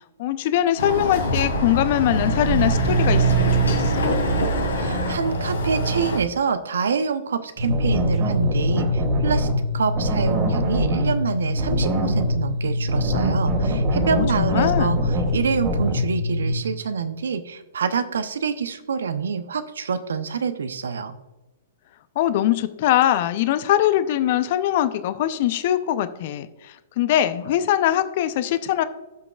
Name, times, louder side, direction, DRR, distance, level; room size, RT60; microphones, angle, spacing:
voice 1, 0.2-4.1 14.1-15.1 22.2-28.8, left 12 dB, 50° left, 13 dB, 0.6 m, -22 dB
Chatter / Car passing by / Motorcycle, 0.8-6.2, right 2 dB, 80° left, 2.6 m, -22 dB
voice 2, 4.8-9.5 9.7-21.2, right 6 dB, 70° right, 11 dB, 0.8 m, -26 dB
sound 1, 7.6-16.5, left 1 dB, 35° right, 2.3 m, -23 dB
16.0 x 6.0 x 2.4 m, 1.1 s
figure-of-eight pair, 115°, 0 cm